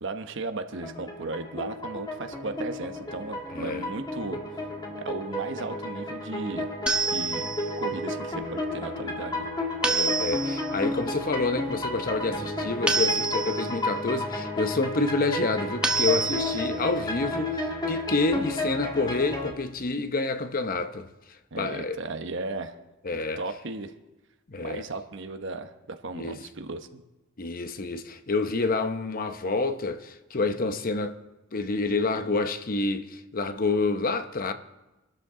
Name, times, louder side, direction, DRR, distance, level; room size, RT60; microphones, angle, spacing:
voice 1, 0.0-4.4 5.0-6.7 7.1-9.5 21.5-22.8 23.1-23.9 24.6-27.0, right 3 dB, 65° right, 1.0 m, -36 dB
sound 1, 0.7-19.5, left 1 dB, 20° left, 2.0 m, -32 dB
voice 2, 3.5-3.9 9.9-21.1 21.6-22.0 23.0-23.4 24.5-24.8 26.1-26.4 27.4-31.2 31.5-34.5, left 3 dB, 45° left, 0.8 m, -28 dB
sound 2, 6.9-7.8 9.8-10.7 12.9-13.8 15.8-16.7, right 3 dB, 5° right, 1.3 m, -27 dB
25.0 x 13.0 x 3.8 m
head